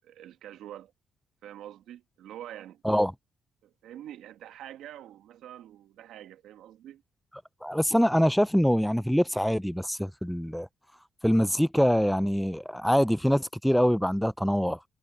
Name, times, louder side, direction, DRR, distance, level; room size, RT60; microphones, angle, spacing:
voice 1, 0.0-0.9 1.4-2.8 3.6-7.0, right 12 dB, 85° right, 2.0 m, -45 dB
voice 2, 7.6-10.7 11.2-14.8, equal, ahead, 0.5 m, -24 dB
cardioid pair, 90°, 0 cm